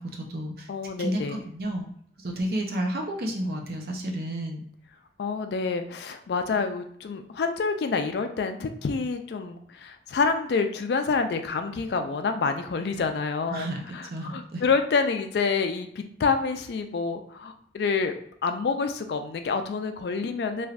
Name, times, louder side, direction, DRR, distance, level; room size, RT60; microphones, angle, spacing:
voice 1, 0.0-0.7 1.0-1.9 2.2-4.6 13.5-14.6, right 1 dB, 60° right, 2 dB, 0.6 m, -31 dB
voice 2, 0.7-1.4 5.2-13.7 13.9-18.2 18.4-20.7, left 4 dB, 70° left, 7 dB, 0.3 m, -27 dB
3.2 x 2.5 x 2.4 m, 0.66 s
head